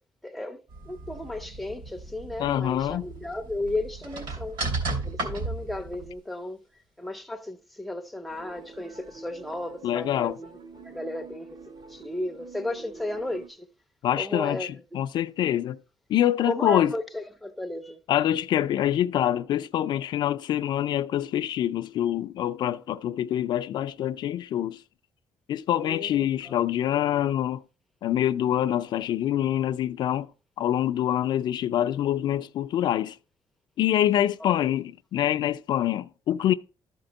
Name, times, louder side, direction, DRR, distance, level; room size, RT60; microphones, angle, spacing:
voice 1, 0.2-4.6 5.0-6.7 7.0-13.7 14.2-15.0 16.4-18.0 25.7-26.5 34.4-34.5, left 1 dB, ahead, 0.5 m, -34 dB
sound 1, 0.7-6.1, right 3 dB, 65° right, 2.7 m, -35 dB
voice 2, 2.4-3.0 9.8-10.4 14.0-15.8 16.1-16.9 18.1-24.8 25.5-27.6 28.0-30.3 30.6-33.2 33.8-36.5, left 11 dB, 60° left, 0.3 m, -25 dB
sound 2, 8.3-13.5, right 4 dB, 50° right, 0.7 m, -47 dB
13.0 x 4.3 x 3.9 m
cardioid pair, 170°, 9 cm